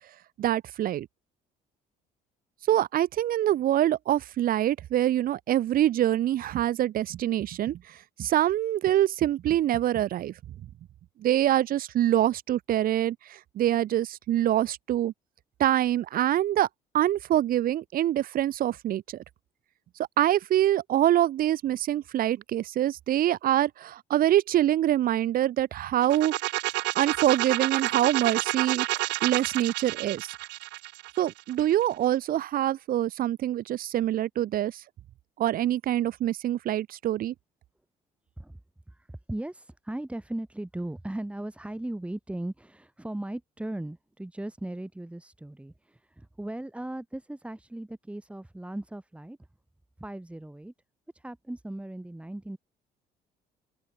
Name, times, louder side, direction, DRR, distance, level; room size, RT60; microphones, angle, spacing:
voice 1, 0.4-1.1 2.7-7.8 8.2-10.3 11.2-13.2 13.5-15.1 15.6-16.7 16.9-19.0 20.2-26.3 26.9-28.9 29.2-30.3 31.2-34.7 35.4-37.3, right 12 dB, 60° right, 1.0 m, -25 dB
sound 1, 26.0-31.8, right 21 dB, 90° right, 0.8 m, -29 dB
voice 2, 38.9-49.4 50.0-50.7 51.1-52.6, right 1 dB, 5° right, 3.8 m, -37 dB
open air
cardioid pair, 110°, 17 cm